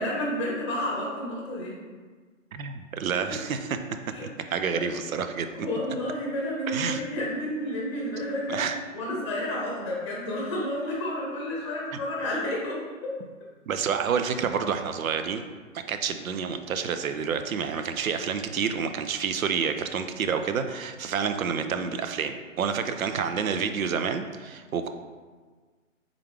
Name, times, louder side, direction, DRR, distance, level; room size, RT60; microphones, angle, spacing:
voice 1, 0.0-1.7 3.1-3.4 4.1-4.3 4.7-4.8 5.5-8.6 8.9-13.2, left 1 dB, 20° left, -4 dB, 0.8 m, -31 dB
voice 2, 2.5-3.8 4.5-5.5 6.7-7.0 8.5-8.8 13.7-15.4 15.9-24.9, right 6 dB, 80° right, 8 dB, 0.5 m, -28 dB
3.6 x 3.4 x 3.3 m, 1.4 s
hypercardioid pair, 150°, 41 cm